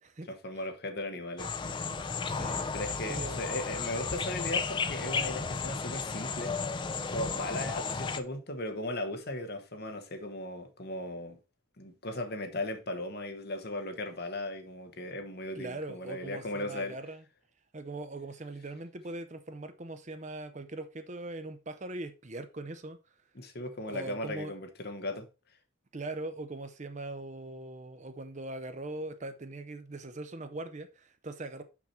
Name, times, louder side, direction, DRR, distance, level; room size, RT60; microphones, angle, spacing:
voice 1, 0.3-1.7 2.7-6.5 7.1-11.4 11.8-17.0 23.3-25.3, left 1 dB, 50° left, 1.1 m, -37 dB
sound 1, 1.4-8.2, left 5 dB, 25° left, 0.4 m, -34 dB
voice 2, 2.2-2.7 3.0-3.4 15.6-17.2 17.7-23.0 23.9-24.5 25.9-31.6, right 2 dB, 35° right, 0.7 m, -41 dB
6.0 x 5.8 x 4.3 m
head